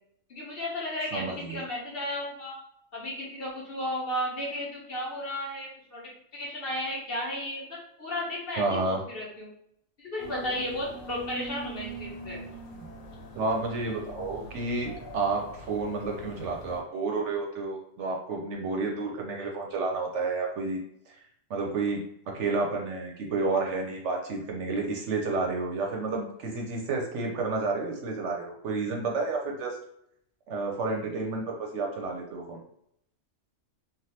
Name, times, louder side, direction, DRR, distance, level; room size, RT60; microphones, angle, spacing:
voice 1, 0.3-2.6 2.9-9.5 10.0-12.5, left 1 dB, 50° left, -4 dB, 1.0 m, -34 dB
voice 2, 1.1-1.6 8.6-9.0 13.3-20.8 21.1-22.0 22.3-29.8 30.5-32.6, right 3 dB, 65° right, 1 dB, 0.8 m, -30 dB
sound 1, 10.2-16.8, right 2 dB, 75° left, 1.1 m, -43 dB
3.2 x 2.3 x 2.7 m, 0.75 s
omnidirectional pair, 1.4 m